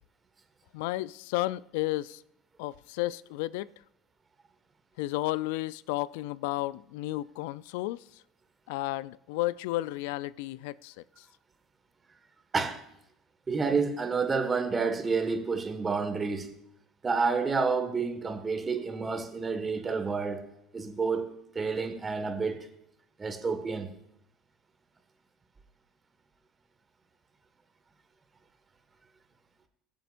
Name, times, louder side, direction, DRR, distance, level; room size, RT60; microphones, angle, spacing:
voice 1, 0.7-2.2 2.6-3.7 5.0-8.0 8.7-11.3, left 18 dB, 75° left, 0.3 m, -32 dB
voice 2, 13.5-16.5 17.0-20.4 20.7-22.7 23.2-23.9, right 4 dB, 30° right, 1.6 m, -29 dB
22.0 x 7.6 x 2.5 m
hypercardioid pair, 70°, 0 cm